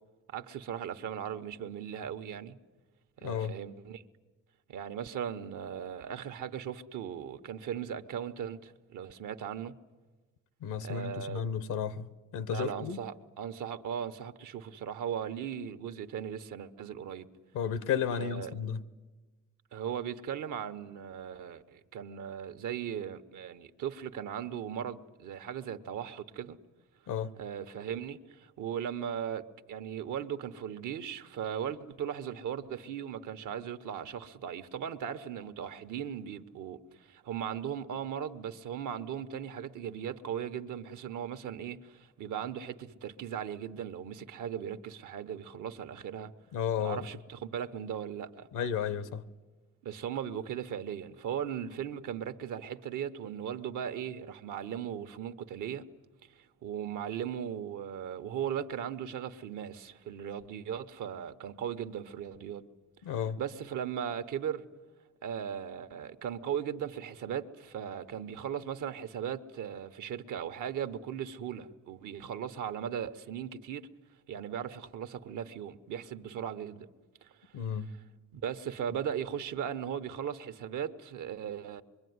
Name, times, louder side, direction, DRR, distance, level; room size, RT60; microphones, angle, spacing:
voice 1, 0.3-2.6 3.2-4.0 4.7-9.7 10.8-11.4 12.5-17.3 18.1-18.5 19.7-26.6 27.4-46.3 46.8-48.5 49.8-55.9 56.6-62.7 63.4-64.6 65.2-73.9 74.3-76.9 77.2-77.3 78.3-81.8, right 9 dB, 85° right, 1.2 m, -38 dB
voice 2, 3.2-3.6 10.6-13.0 17.5-18.8 27.1-27.3 46.5-47.1 48.5-49.2 63.0-63.4 77.5-77.9, left 8 dB, 90° left, 1.1 m, -33 dB
25.0 x 23.0 x 9.6 m
cardioid pair, 90°, 30 cm